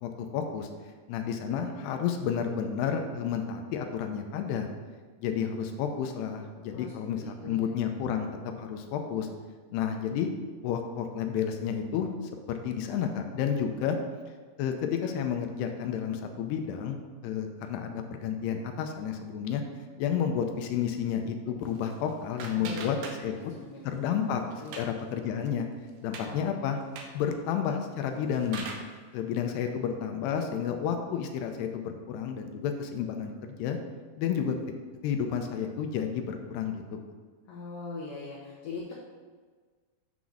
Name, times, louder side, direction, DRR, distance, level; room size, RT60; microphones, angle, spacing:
voice 1, 0.0-0.7 1.1-4.7 5.2-8.3 8.6-9.3 9.7-10.3 10.6-12.1 12.5-14.0 14.6-19.6 20.0-23.3 23.8-24.4 24.8-25.7 26.0-28.7 29.1-33.8 34.2-34.6 35.0-37.0, left 8 dB, 90° left, 5 dB, 2.7 m, -31 dB
voice 2, 7.2-7.7 22.5-24.2 24.6-24.8 26.1-26.4 37.5-38.9, left 3 dB, 65° left, -6 dB, 2.4 m, -41 dB
sound 1, 21.6-23.6 23.9-25.0 25.4-25.5 25.9-26.3 26.8-27.2 28.0-29.0, right 4 dB, 75° right, 2.5 m, -42 dB
7.0 x 4.0 x 6.2 m, 1.5 s
omnidirectional pair, 4.8 m